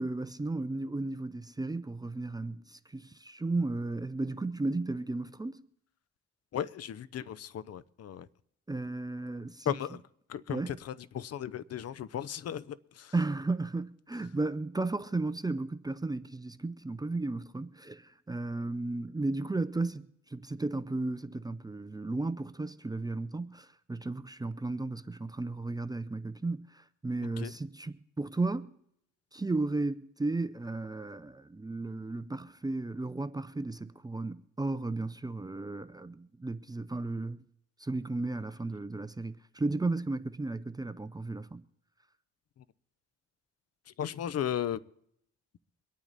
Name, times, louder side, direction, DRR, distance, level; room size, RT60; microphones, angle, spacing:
voice 1, 0.0-5.6 8.7-9.7 10.5-10.8 13.1-28.8 29.3-37.4 37.8-41.6, right 2 dB, 10° right, 0.6 m, -34 dB
voice 2, 6.5-8.3 9.7-10.0 10.3-13.1 27.4-27.5 44.0-44.8, left 10 dB, 50° left, 0.7 m, -36 dB
23.5 x 9.2 x 4.1 m
cardioid pair, 75°, 31 cm